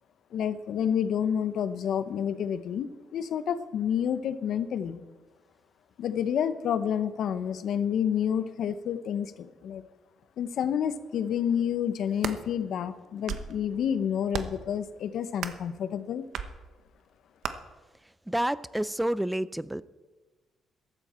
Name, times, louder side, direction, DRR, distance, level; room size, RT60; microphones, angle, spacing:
voice 1, 0.3-2.9 3.1-5.0 6.0-9.8 10.4-16.2, left 8 dB, 70° left, 12 dB, 0.8 m, -29 dB
sound 1, 12.0-12.4 13.0-13.6 14.3-14.7 15.4-15.7 16.3-16.5 17.4-17.5, right 7 dB, 75° right, 0.9 m, -34 dB
voice 2, 18.3-19.8, right 1 dB, 5° right, 18 dB, 0.5 m, -29 dB
14.5 x 13.0 x 4.4 m, 1.3 s
cardioid pair, 90°, 0 cm